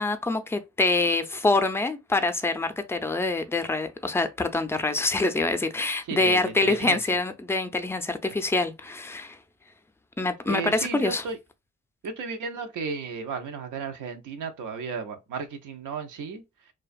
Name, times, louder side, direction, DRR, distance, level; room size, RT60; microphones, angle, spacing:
voice 1, 0.0-9.4 10.2-11.2, left 2 dB, 10° left, 0.4 m, -25 dB
voice 2, 6.1-7.0 8.3-8.4 10.4-11.4 12.0-16.4, right 5 dB, 80° right, 0.6 m, -34 dB
2.4 x 2.3 x 2.3 m
supercardioid pair, 50°, 31 cm